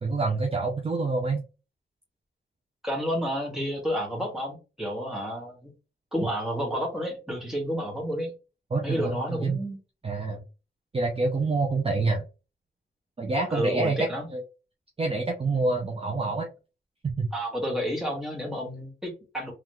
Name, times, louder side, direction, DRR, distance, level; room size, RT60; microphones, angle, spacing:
voice 1, 0.0-1.4 8.7-9.6 10.0-10.4 10.9-12.3 13.2-14.4 15.0-16.5 17.2-17.3, right 3 dB, 30° right, 1 dB, 0.7 m, -27 dB
voice 2, 2.8-5.7 6.1-8.3 8.8-9.8 13.5-14.3 17.3-19.5, equal, ahead, -2 dB, 1.7 m, -30 dB
3.6 x 3.1 x 3.2 m, 0.31 s
wide cardioid pair, 155°, 20 cm